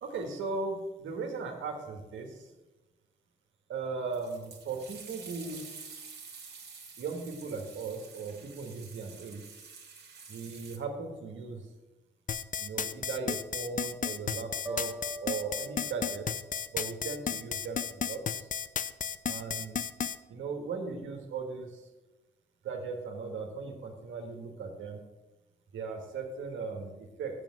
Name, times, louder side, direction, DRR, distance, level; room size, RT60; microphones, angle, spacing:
voice 1, 0.0-2.5 3.7-5.7 7.0-9.6 10.3-11.7 12.6-14.9 15.2-16.3 16.7-18.5 19.2-19.8 20.3-21.9 22.6-25.0 25.7-27.4, right 4 dB, 75° right, 3 dB, 1.7 m, -38 dB
sound 1, 4.1-10.8, right 5 dB, 55° right, 2.1 m, -49 dB
sound 2, 12.3-20.2, left 7 dB, 40° left, 0.5 m, -33 dB
sound 3, 14.7-17.8, right 1 dB, 10° right, 1.0 m, -44 dB
7.4 x 7.1 x 7.5 m, 1.1 s
supercardioid pair, 45°, 20 cm